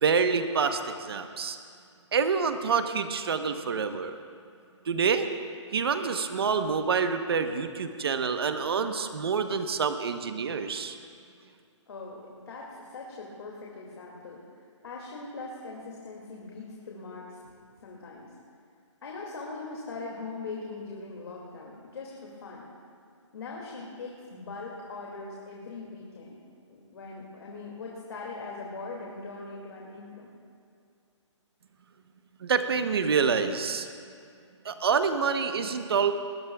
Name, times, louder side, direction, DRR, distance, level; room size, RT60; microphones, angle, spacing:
voice 1, 0.0-1.6 2.1-4.2 4.8-5.3 5.7-11.0 32.4-33.9 34.6-36.1, right 5 dB, 50° right, 8 dB, 1.1 m, -27 dB
voice 2, 11.9-18.3 19.0-22.7 23.3-26.4 26.7-30.3, left 3 dB, 55° left, -3 dB, 2.5 m, -41 dB
21.0 x 20.0 x 2.4 m, 2.4 s
hypercardioid pair, 170°, 16 cm